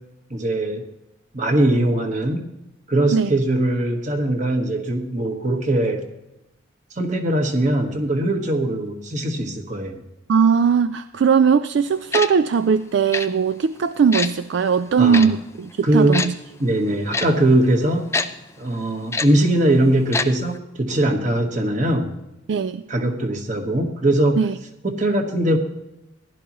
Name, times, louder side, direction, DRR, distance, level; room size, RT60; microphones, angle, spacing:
voice 1, 0.3-0.8 1.3-2.4 2.9-6.1 7.0-10.0 15.0-15.3 15.8-16.2 16.6-18.1 18.6-22.1 22.9-24.4 24.8-25.6, right 1 dB, 40° right, 4 dB, 1.4 m, -21 dB
voice 2, 10.3-16.3 22.5-22.8 24.4-24.6, right 6 dB, 65° right, 12 dB, 0.3 m, -19 dB
Tick-tock, 12.1-12.3 13.1-13.3 14.1-14.3 15.1-15.3 16.1-16.3 17.1-17.3 18.1-18.3 19.1-19.3 20.1-20.3 20.5-20.6, left 4 dB, 15° left, 0.4 m, -23 dB
15.5 x 11.5 x 3.0 m, 0.92 s
head